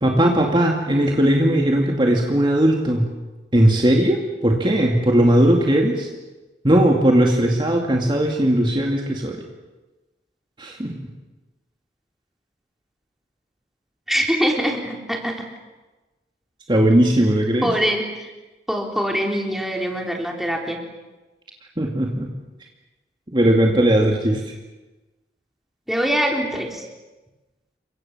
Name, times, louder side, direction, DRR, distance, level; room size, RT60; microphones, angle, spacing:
voice 1, 0.0-3.1 3.5-6.1 6.6-9.4 10.6-10.9 16.7-17.7 21.8-22.3 23.3-24.5, right 1 dB, 25° right, 1 dB, 2.5 m, -18 dB
voice 2, 14.1-15.4 17.6-18.3 18.7-20.8 25.9-26.8, equal, ahead, 1 dB, 3.7 m, -23 dB
30.0 x 24.0 x 7.4 m, 1.1 s
head